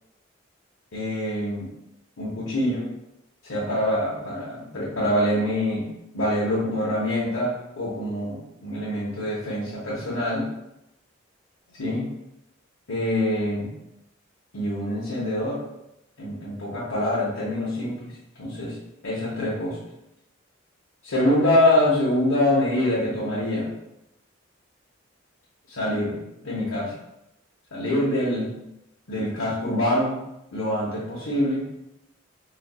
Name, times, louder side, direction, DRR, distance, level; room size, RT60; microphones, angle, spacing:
voice 1, 0.9-1.7 2.2-2.9 3.4-5.8 6.1-10.4 11.8-12.1 12.9-13.7 14.5-15.6 16.2-18.1 18.4-18.8 19.0-19.8 21.0-23.7 25.7-26.9 27.7-28.5 29.1-30.2 30.5-31.6, left 1 dB, 85° left, -8 dB, 0.9 m, -25 dB
4.1 x 2.5 x 2.3 m, 0.87 s
head